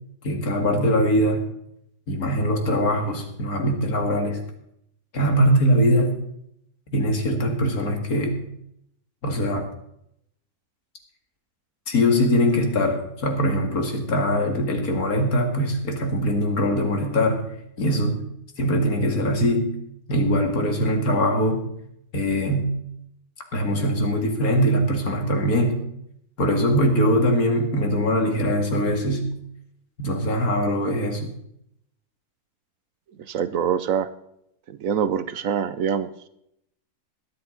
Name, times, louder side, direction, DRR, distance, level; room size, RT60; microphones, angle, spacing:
voice 1, 0.2-1.4 2.1-4.4 5.1-6.1 6.9-8.4 9.2-9.7 11.9-17.4 17.8-18.2 18.6-19.7 20.1-21.7 22.1-22.7 23.5-25.8 26.4-29.3 30.0-31.3, equal, 70° left, 4 dB, 2.4 m, -22 dB
voice 2, 33.2-34.1 34.7-36.3, right 8 dB, 65° right, 14 dB, 1.0 m, -25 dB
21.0 x 8.0 x 3.9 m, 0.74 s
omnidirectional pair, 1.6 m